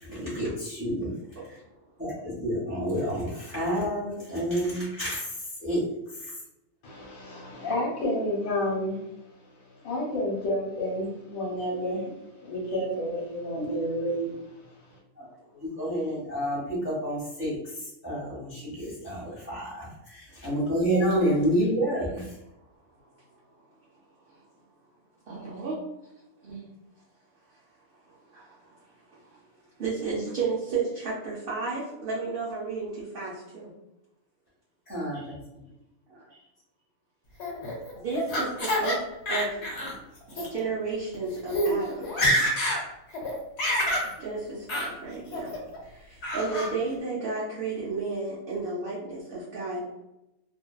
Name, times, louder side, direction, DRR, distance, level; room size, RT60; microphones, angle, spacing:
voice 1, 0.1-1.1 2.0-5.2 5.6-5.8 15.2-15.3 15.5-17.6 18.0-22.3 34.9-35.4, equal, 10° right, -7 dB, 0.6 m, -29 dB
voice 2, 1.3-1.7 20.3-20.4 24.3-24.4 25.3-25.8 26.4-26.7 28.3-29.4 29.8-33.7 36.1-36.4 37.9-39.0 39.3-39.7 40.3-42.2 44.2-50.0, right 4 dB, 60° right, -7 dB, 0.6 m, -33 dB
voice 3, 6.8-15.0, equal, 75° left, -4 dB, 1.1 m, -31 dB
Laughter, 37.4-39.0 39.3-39.9 40.3-40.5 41.1-41.2 41.5-41.7 42.0-42.8 43.1-44.1 44.7-44.9 45.3-45.8 46.2-46.7, equal, 55° left, 1.0 m, -27 dB
2.6 x 2.1 x 2.2 m, 0.89 s
omnidirectional pair, 1.5 m